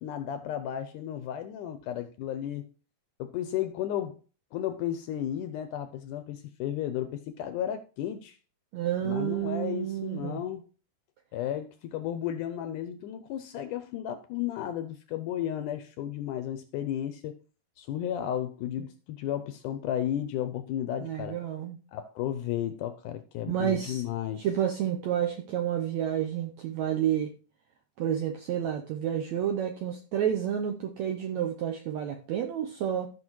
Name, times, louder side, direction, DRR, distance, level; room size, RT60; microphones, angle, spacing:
voice 1, 0.0-2.7 3.2-4.2 4.5-8.4 9.0-10.7 11.3-17.3 17.8-21.4 21.9-24.5, left 11 dB, 80° left, 1.9 m, -33 dB
voice 2, 8.7-10.4 21.0-21.8 23.5-24.0 24.4-27.3 28.0-33.1, right 10 dB, 80° right, 1.6 m, -30 dB
14.5 x 5.7 x 3.0 m
omnidirectional pair, 4.1 m